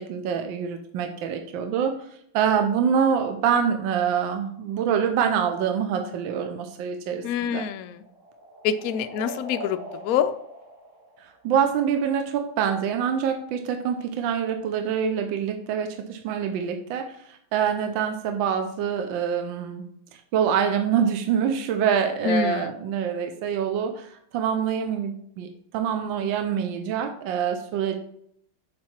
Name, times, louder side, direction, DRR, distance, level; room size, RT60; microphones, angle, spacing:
voice 1, 0.0-2.1 2.3-7.7 11.2-19.8 20.3-28.0, right 7 dB, 75° right, 6 dB, 1.4 m, -25 dB
sound 1, 7.1-11.8, equal, 40° right, 1.8 m, -42 dB
voice 2, 7.2-8.0 8.6-10.4 22.2-22.7, left 8 dB, 75° left, 9 dB, 0.8 m, -26 dB
7.5 x 4.4 x 4.4 m, 0.70 s
omnidirectional pair, 2.1 m